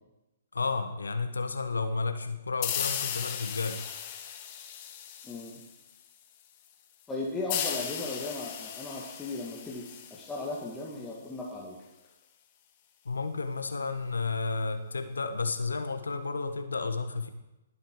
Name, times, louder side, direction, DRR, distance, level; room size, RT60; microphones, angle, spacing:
voice 1, 0.5-3.8 13.0-17.3, left 4 dB, 80° left, 9 dB, 1.2 m, -32 dB
sound 1, 2.6-6.0 7.5-11.0, left 9 dB, 40° left, 1.5 m, -36 dB
voice 2, 7.1-11.8, left 2 dB, 10° left, -4 dB, 2.0 m, -36 dB
20.0 x 7.8 x 4.7 m, 0.99 s
figure-of-eight pair, 125°, 0 cm